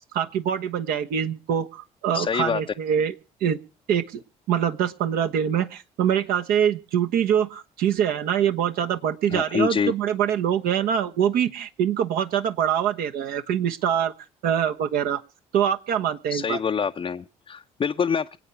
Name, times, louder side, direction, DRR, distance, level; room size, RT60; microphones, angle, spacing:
voice 1, 0.1-3.1 3.4-3.6 3.9-4.2 4.5-14.1 14.4-15.2 15.5-16.6, right 9 dB, 60° right, 1.2 m, -24 dB
voice 2, 2.1-2.6 9.3-9.9 16.3-18.4, left 6 dB, 30° left, 0.6 m, -26 dB
26.0 x 8.7 x 4.5 m
figure-of-eight pair, 50°, 17 cm